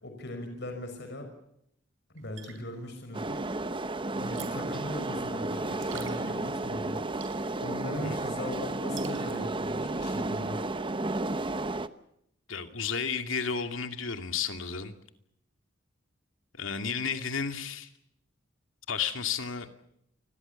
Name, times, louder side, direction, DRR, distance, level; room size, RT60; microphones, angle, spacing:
voice 1, 0.0-1.3 2.1-3.4 4.1-7.0 7.6-10.6, left 1 dB, 60° left, 6 dB, 5.8 m, -39 dB
sound 1, 2.2-9.7, right 9 dB, 75° right, 5.0 m, -51 dB
sound 2, 3.1-11.9, right 2 dB, 25° right, 1.0 m, -32 dB
voice 2, 12.5-14.9 16.5-17.9 18.9-19.7, left 6 dB, 85° left, 7 dB, 2.4 m, -32 dB
29.5 x 21.5 x 7.0 m, 0.76 s
head